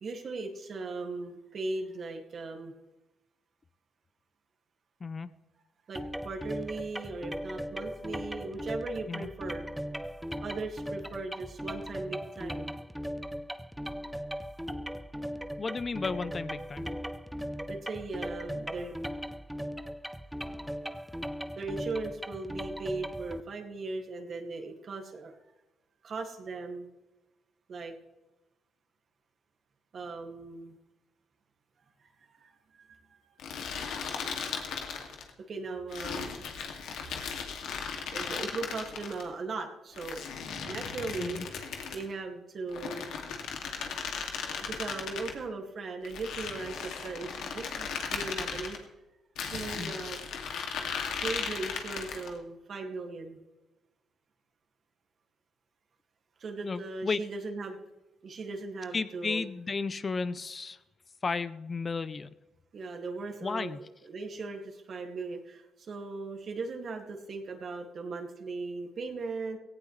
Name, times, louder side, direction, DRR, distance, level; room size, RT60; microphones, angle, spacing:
voice 1, 0.0-2.7 5.9-9.6 10.4-12.7 17.7-19.0 20.7-20.8 21.6-25.4 26.0-26.9 27.7-27.9 29.9-30.8 32.0-32.1 32.4-33.4 35.5-36.4 38.1-41.4 41.9-43.1 44.7-48.8 49.4-50.2 51.2-53.4 56.4-57.8 58.2-59.4 62.7-69.6, right 3 dB, 50° right, 3 dB, 2.2 m, -38 dB
voice 2, 5.0-5.3 9.1-9.3 15.6-16.9 41.2-41.5 49.8-50.0 56.6-57.2 58.9-60.8 61.2-62.3 63.4-63.8, left 4 dB, 35° left, 14 dB, 0.6 m, -33 dB
sound 1, 5.9-23.4, equal, 5° right, 0.7 m, -38 dB
sound 2, 33.4-35.3 35.9-39.2 40.0-42.1 42.7-45.4 46.0-48.8 49.4-52.3, left 6 dB, 80° left, 2.3 m, -37 dB
18.0 x 16.0 x 3.3 m, 1.1 s
cardioid pair, 90°, 0 cm